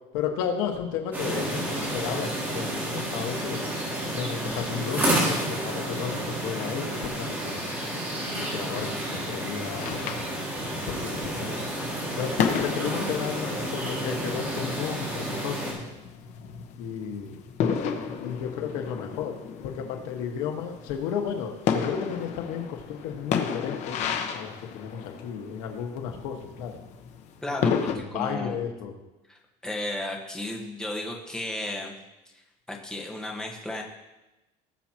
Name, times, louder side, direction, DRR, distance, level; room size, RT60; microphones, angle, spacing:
voice 1, 0.1-3.6 4.1-7.6 8.4-10.3 10.5-11.6 12.1-15.7 16.8-17.4 18.2-19.3 19.6-26.8 27.9-28.9, left 7 dB, 85° left, 3 dB, 1.6 m, -33 dB
sound 1, 1.1-15.7, right 1 dB, 15° right, 4.4 m, -30 dB
sound 2, 9.8-28.0, left 7 dB, 50° left, 1.2 m, -33 dB
voice 2, 27.4-28.6 29.3-31.9 32.3-32.4 32.7-33.8, left 1 dB, 5° left, -1 dB, 1.4 m, -34 dB
19.0 x 7.5 x 3.0 m, 1.0 s
cardioid pair, 155°, 15 cm